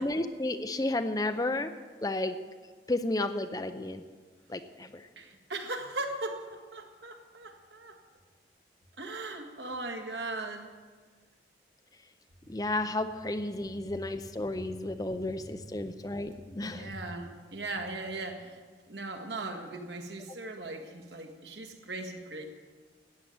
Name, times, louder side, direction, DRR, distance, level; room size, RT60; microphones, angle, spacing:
voice 1, 0.0-1.7 2.0-2.4 2.9-4.0 4.5-5.0 12.5-16.9, left 2 dB, 20° left, 9 dB, 0.6 m, -32 dB
voice 2, 5.2-8.0 9.0-10.7 16.6-18.6 18.9-22.5, right 2 dB, 75° right, 4 dB, 1.9 m, -38 dB
14.0 x 8.5 x 9.3 m, 1.5 s
head